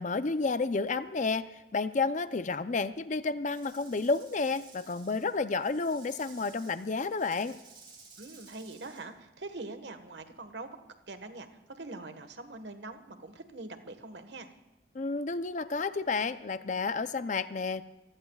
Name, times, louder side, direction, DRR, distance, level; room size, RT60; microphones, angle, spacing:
voice 1, 0.0-1.4 1.7-7.6 14.9-17.8, left 4 dB, 40° left, 12 dB, 0.5 m, -31 dB
Rattle / Rattle (instrument), 3.5-9.0, right 4 dB, 30° right, 3.8 m, -55 dB
voice 2, 8.2-10.7 11.1-14.5, right 2 dB, 65° right, 8 dB, 1.4 m, -43 dB
28.5 x 16.0 x 2.4 m, 1.0 s
head